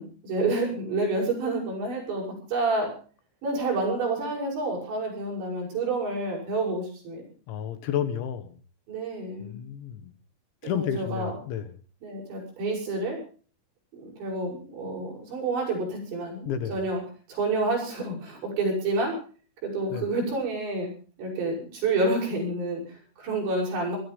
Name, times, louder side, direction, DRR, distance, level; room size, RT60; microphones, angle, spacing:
voice 1, 0.0-2.9 3.4-7.2 8.9-9.6 10.6-11.4 12.0-13.2 13.9-17.0 17.3-19.1 19.6-20.9 21.2-24.0, right 2 dB, 60° right, -1 dB, 9.3 m, -29 dB
voice 2, 7.5-8.6 9.4-10.1 10.6-11.7 16.5-16.7 19.9-20.1, left 9 dB, 70° left, 10 dB, 3.5 m, -31 dB
20.5 x 13.0 x 5.4 m, 0.40 s
omnidirectional pair, 5.8 m